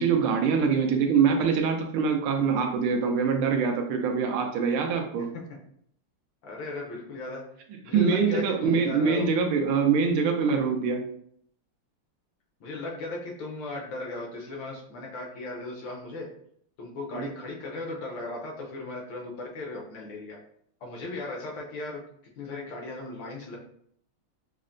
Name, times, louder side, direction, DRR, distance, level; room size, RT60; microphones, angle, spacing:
voice 1, 0.0-5.3 7.9-11.0 17.1-17.3, right 5 dB, 85° right, 4 dB, 1.5 m, -24 dB
voice 2, 5.1-5.6 6.4-7.4 7.8-9.3 12.6-16.3 16.8-20.4 20.8-22.0 22.4-23.6, left 2 dB, 70° left, 0 dB, 1.3 m, -37 dB
5.5 x 2.1 x 2.5 m, 0.68 s
omnidirectional pair, 2.3 m